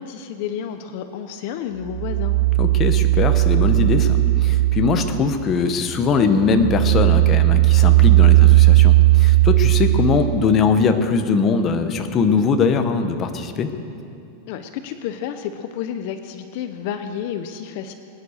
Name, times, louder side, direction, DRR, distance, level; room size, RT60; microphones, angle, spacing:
voice 1, 0.0-2.3 14.5-17.9, left 9 dB, 50° left, 8 dB, 0.7 m, -30 dB
sound 1, 1.9-5.7 6.1-10.7, right 18 dB, 50° right, 0.4 m, -16 dB
voice 2, 2.6-13.7, left 5 dB, 25° left, 7 dB, 1.0 m, -21 dB
22.5 x 9.9 x 6.5 m, 2.6 s
supercardioid pair, 160°, 0 cm